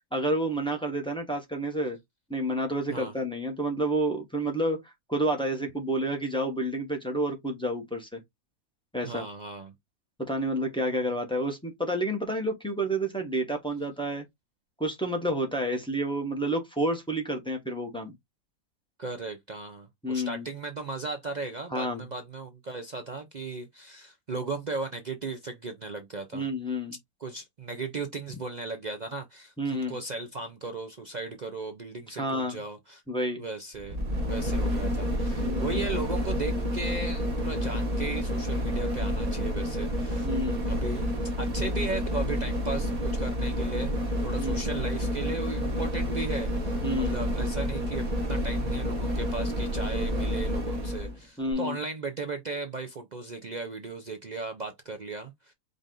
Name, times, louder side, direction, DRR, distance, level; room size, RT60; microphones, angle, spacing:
voice 1, 0.1-2.0 2.3-8.2 8.9-9.2 10.2-14.2 14.8-18.1 20.0-20.4 21.7-22.1 26.3-26.9 29.6-30.0 32.2-32.6 33.1-33.4 35.4-35.8 40.2-40.7 44.4-44.6 46.8-47.2 51.4-51.8, right 1 dB, 5° left, 0.9 m, -29 dB
voice 2, 9.0-9.7 19.0-26.5 27.2-33.0 33.4-40.3 40.7-41.1 41.4-44.0 44.2-55.5, right 3 dB, 55° right, 0.5 m, -36 dB
sound 1, 33.7-51.1 51.5-51.6, equal, 30° right, 1.1 m, -29 dB
5.1 x 2.6 x 3.7 m
omnidirectional pair, 1.6 m